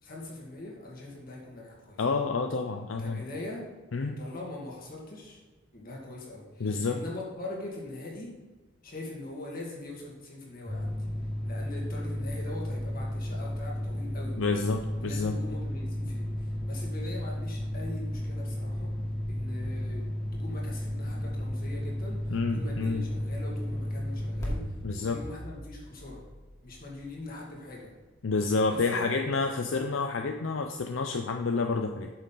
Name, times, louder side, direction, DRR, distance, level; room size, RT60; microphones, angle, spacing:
voice 1, 0.0-2.0 3.0-3.6 4.2-5.4 5.7-8.3 8.8-10.9 11.4-14.4 15.0-18.9 19.3-26.2 26.6-27.9 28.7-29.4, left 2 dB, 45° left, -2 dB, 2.1 m, -42 dB
voice 2, 2.0-3.2 3.9-4.2 6.6-7.0 14.4-15.3 22.3-23.1 24.8-25.2 28.2-32.1, left 4 dB, 75° left, 5 dB, 0.5 m, -29 dB
sound 1, 10.7-27.0, left 1 dB, 15° left, 2.2 m, -34 dB
8.8 x 6.6 x 3.9 m, 1.3 s
head